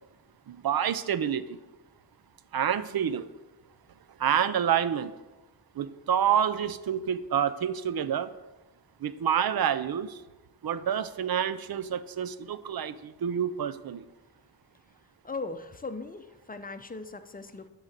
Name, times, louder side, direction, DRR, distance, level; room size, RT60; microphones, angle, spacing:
voice 1, 0.5-1.6 2.5-3.3 4.2-5.1 5.8-8.3 9.0-10.2 10.6-14.1, right 9 dB, 60° right, 14 dB, 0.6 m, -28 dB
voice 2, 15.2-17.7, left 3 dB, 20° left, 9 dB, 0.6 m, -38 dB
10.5 x 3.9 x 7.3 m, 1.1 s
wide cardioid pair, 85°, 42 cm